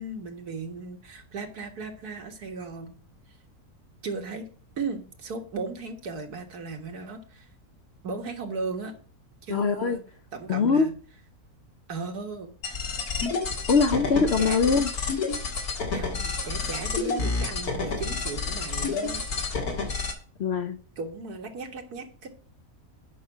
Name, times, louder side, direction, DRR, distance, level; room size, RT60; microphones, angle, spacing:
voice 1, 0.0-2.9 4.0-4.5 4.8-7.5 8.0-8.9 9.4-10.0 10.3-10.9 11.9-12.5 14.4-14.9 15.9-19.2 21.0-22.3, right 4 dB, 85° right, 2.1 m, -36 dB
voice 2, 9.5-10.0 10.5-10.9 13.7-14.9 20.4-20.8, left 5 dB, 60° left, 0.7 m, -22 dB
sound 1, 12.6-20.1, left 4 dB, 75° left, 2.3 m, -29 dB
8.6 x 5.6 x 7.4 m
omnidirectional pair, 1.6 m